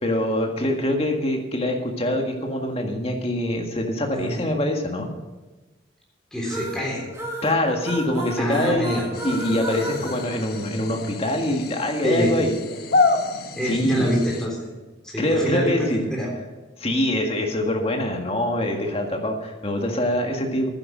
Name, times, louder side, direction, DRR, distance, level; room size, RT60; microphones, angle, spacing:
voice 1, 0.0-5.1 7.4-9.0 9.2-12.6 13.6-14.1 15.2-16.0 16.8-20.7, left 1 dB, 30° left, 2 dB, 1.8 m, -24 dB
voice 2, 6.3-7.0 8.4-9.0 9.7-10.0 12.0-12.3 13.6-14.7 15.0-16.3, equal, 5° left, -4 dB, 3.5 m, -25 dB
sound 1, 6.4-11.2, right 1 dB, 15° right, 1.9 m, -33 dB
sound 2, 9.1-14.5, left 3 dB, 55° left, 1.2 m, -28 dB
11.0 x 10.0 x 6.4 m, 1.2 s
head